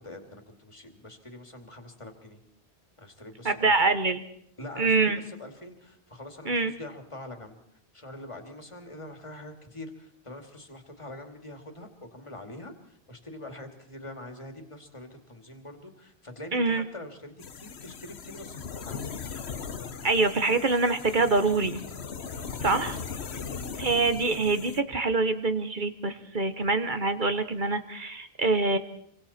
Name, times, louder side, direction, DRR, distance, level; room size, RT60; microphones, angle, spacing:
voice 1, 0.0-2.4 3.0-4.0 4.6-7.6 7.9-19.1 22.3-22.9 23.3-23.9, left 1 dB, 30° left, 5 dB, 2.6 m, -44 dB
voice 2, 3.4-4.2 4.8-5.2 6.4-6.7 16.5-16.8 20.0-21.8 22.6-23.0 23.8-28.8, right 3 dB, 50° right, 9 dB, 1.4 m, -25 dB
sound 1, 17.4-24.8, left 6 dB, 90° left, 1.4 m, -39 dB
28.5 x 24.5 x 4.3 m, 0.69 s
omnidirectional pair, 1.1 m